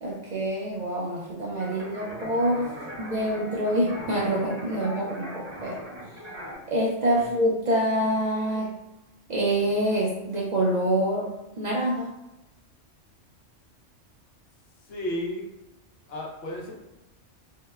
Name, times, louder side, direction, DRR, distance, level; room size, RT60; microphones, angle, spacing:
voice 1, 0.0-2.7 3.0-5.8 6.7-8.7 9.3-11.3 11.6-12.1, right 1 dB, 70° right, -5 dB, 0.4 m, -26 dB
sound 1, 1.6-6.6, equal, 25° right, 1.0 m, -40 dB
voice 2, 14.9-15.5 16.1-16.7, left 1 dB, 60° left, -1 dB, 0.8 m, -33 dB
3.5 x 2.1 x 2.2 m, 0.94 s
omnidirectional pair, 1.3 m